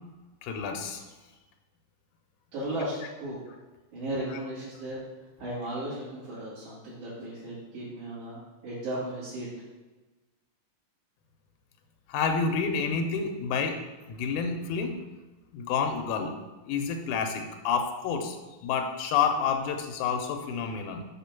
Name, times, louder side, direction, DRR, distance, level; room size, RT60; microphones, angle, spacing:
voice 1, 0.4-1.0 4.1-4.4 12.1-13.8 14.1-15.0 15.5-16.4 16.6-18.4 18.6-21.0, left 6 dB, 80° left, 5 dB, 2.2 m, -29 dB
voice 2, 2.5-3.4 3.9-5.0 5.4-9.5, right 1 dB, 75° right, -11 dB, 3.8 m, -35 dB
6.8 x 3.6 x 5.8 m, 1.2 s
omnidirectional pair, 3.6 m